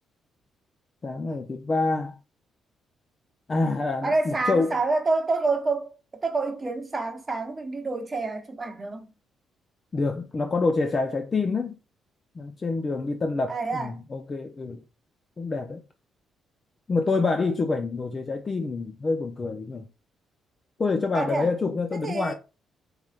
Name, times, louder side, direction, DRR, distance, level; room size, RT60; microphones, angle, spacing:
voice 1, 1.0-2.2 3.5-4.8 9.9-11.8 12.4-14.8 15.4-15.8 16.9-19.9 20.8-22.3, left 3 dB, 35° left, 0.5 m, -27 dB
voice 2, 4.0-6.0 6.2-9.1 13.5-14.0 21.1-21.5 22.0-22.3, right 3 dB, 30° right, 0.9 m, -27 dB
4.8 x 3.1 x 2.4 m
cardioid pair, 90°, 0 cm